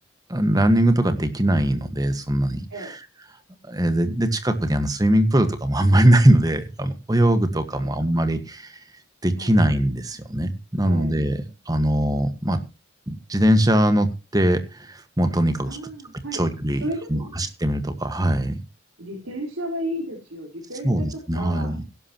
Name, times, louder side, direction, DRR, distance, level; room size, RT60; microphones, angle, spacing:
voice 1, 0.3-3.0 3.7-8.7 9.2-12.6 13.1-15.8 16.3-16.8 17.1-18.6 20.8-21.8, right 1 dB, 20° right, 1.7 m, -21 dB
voice 2, 10.8-11.2 15.6-16.4 16.8-17.4 19.0-21.7, right 1 dB, 85° right, 4.6 m, -33 dB
17.5 x 12.0 x 3.1 m
head